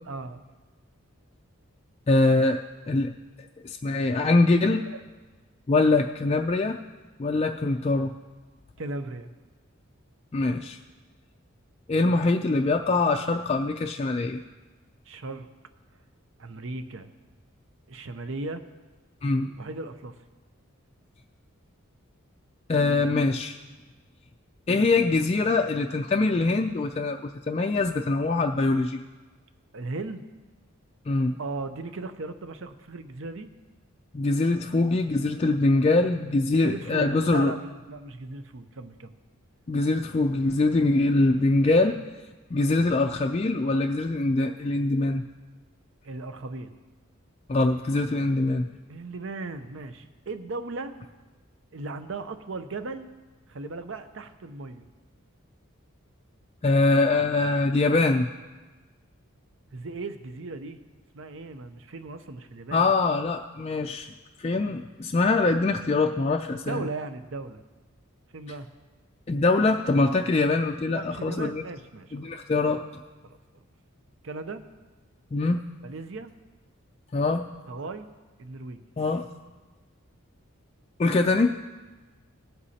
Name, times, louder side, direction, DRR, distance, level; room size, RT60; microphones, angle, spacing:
voice 1, 0.1-0.4 4.9-5.0 8.8-9.3 15.1-15.5 16.4-17.1 17.9-18.6 19.6-20.1 29.7-30.2 31.4-33.5 36.5-39.1 46.0-46.7 48.9-50.9 51.7-53.1 53.5-54.9 59.7-60.8 61.1-62.9 66.5-67.6 68.3-68.7 70.0-70.3 70.9-72.4 73.2-73.3 74.2-74.6 75.8-76.3 77.7-78.1 78.4-78.8, right 3 dB, 65° right, 10 dB, 0.6 m, -37 dB
voice 2, 2.1-2.6 2.9-3.1 3.6-4.8 5.7-6.8 7.2-8.1 10.3-10.8 11.9-14.4 19.2-19.5 22.7-23.6 24.7-29.0 31.1-31.4 34.1-37.5 39.7-42.0 42.5-45.2 47.5-48.7 56.6-58.3 62.7-64.1 64.4-66.9 69.3-71.6 72.1-72.8 75.3-75.6 77.1-77.5 79.0-79.3 81.0-81.6, left 3 dB, 30° left, 3 dB, 0.3 m, -23 dB
18.5 x 8.0 x 2.8 m, 1.3 s
head